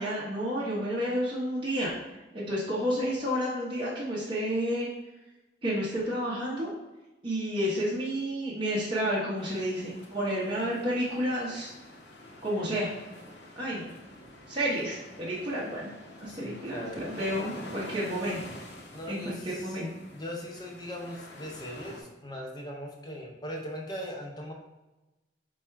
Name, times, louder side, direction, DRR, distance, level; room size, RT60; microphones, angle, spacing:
voice 1, 0.0-1.9 2.3-4.9 5.6-6.7 7.2-11.7 12.4-12.9 13.6-13.9 14.5-15.9 16.2-18.4 19.0-19.9, equal, 25° right, -7 dB, 0.8 m, -30 dB
sound 1, 9.4-22.0, left 1 dB, 65° left, 0.7 m, -47 dB
voice 2, 16.3-17.1 18.9-19.8 20.1-24.5, equal, 20° left, -1 dB, 0.7 m, -39 dB
4.1 x 2.3 x 4.5 m, 1.0 s
head